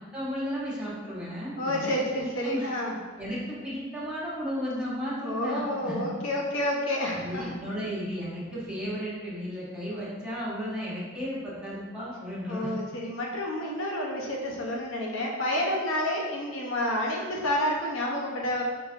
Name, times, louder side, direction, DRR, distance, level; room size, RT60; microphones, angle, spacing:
voice 1, 0.1-1.9 2.4-2.7 3.2-6.0 7.2-12.7, equal, 5° right, -9 dB, 1.1 m, -34 dB
voice 2, 1.6-2.9 5.2-7.5 12.5-18.6, left 1 dB, 75° left, -2 dB, 0.8 m, -29 dB
4.7 x 3.9 x 2.5 m, 1.5 s
head